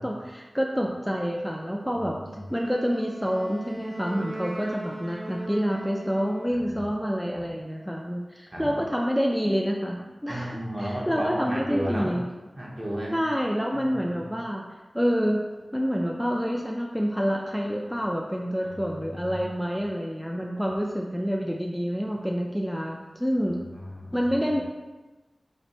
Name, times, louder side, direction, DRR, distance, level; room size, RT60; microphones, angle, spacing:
voice 1, 0.0-2.2 2.5-12.2 13.1-14.6 14.9-15.4 15.7-23.6 24.1-24.6, equal, ahead, -1 dB, 0.3 m, -27 dB
voice 2, 1.9-2.4 6.5-6.9 7.3-7.4 8.5-8.7 10.3-12.1 12.6-13.1 13.7-14.3 18.6-18.7 19.1-19.5 20.6-20.7 23.7-24.6, equal, 35° right, -3 dB, 0.9 m, -35 dB
Wind instrument woodwind instrument, 2.5-6.7, right 1 dB, 85° right, 1.2 m, -39 dB
3.3 x 2.5 x 4.0 m, 1.2 s
wide cardioid pair, 60°, 0 cm